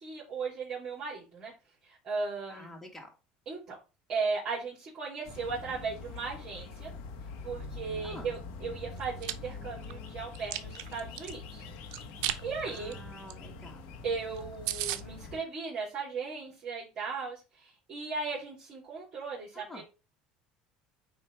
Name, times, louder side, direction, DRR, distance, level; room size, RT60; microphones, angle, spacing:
voice 1, 0.0-1.5 2.0-2.7 3.5-3.8 4.1-6.9 7.4-11.6 12.4-13.0 14.0-19.8, right 4 dB, 40° right, 3.1 m, -36 dB
voice 2, 2.5-3.1 8.0-8.4 12.6-13.9 19.5-19.8, left 1 dB, 10° left, 2.0 m, -48 dB
sound 1, 5.2-15.4, left 3 dB, 75° left, 1.6 m, -44 dB
Chewing mastication, 9.0-9.3 9.8-11.3 11.9-12.4 12.7-12.9 13.3-13.4 13.6-13.7 14.1-14.2 14.4-14.5 14.7-15.0, right 13 dB, 80° right, 0.7 m, -34 dB
8.7 x 3.2 x 4.6 m
cardioid pair, 125°, 3 cm